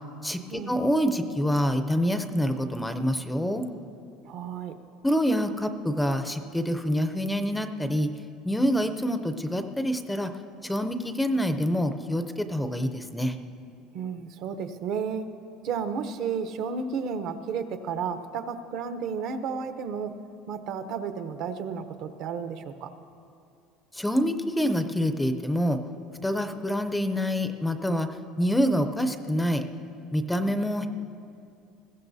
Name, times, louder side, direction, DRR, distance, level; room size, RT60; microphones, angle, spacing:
voice 1, 0.2-3.6 5.0-8.1 8.4-10.3 10.6-13.4 23.9-25.8 26.2-28.1 28.4-29.6 30.1-30.9, equal, 5° left, 8 dB, 0.5 m, -26 dB
voice 2, 4.3-4.7 13.9-15.2 15.6-20.1 20.5-22.9, right 6 dB, 55° right, 9 dB, 0.7 m, -32 dB
20.5 x 15.5 x 2.7 m, 2.5 s
cardioid pair, 150°, 0 cm